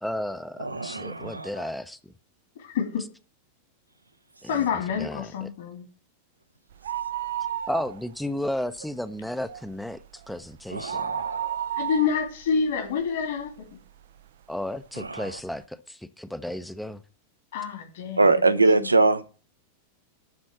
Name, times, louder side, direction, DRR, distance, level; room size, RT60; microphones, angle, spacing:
voice 1, 0.0-2.1 4.4-4.7 5.0-5.5 7.7-11.1 14.5-17.0, left 1 dB, ahead, 0.7 m, -33 dB
voice 2, 0.6-1.7 10.7-11.8 15.0-15.3 18.2-19.2, right 3 dB, 80° right, 0.8 m, -23 dB
voice 3, 2.6-3.1 4.5-5.8 11.8-13.7 17.5-18.4 18.8-18.9, left 6 dB, 60° left, 2.9 m, -28 dB
sound 1, 6.7-8.4 8.7-8.8 9.3-13.6 14.2-14.3 15.1-15.2 15.4-15.5, right 10 dB, 60° right, 0.5 m, -33 dB
12.0 x 4.3 x 7.3 m
figure-of-eight pair, 90°, 0 cm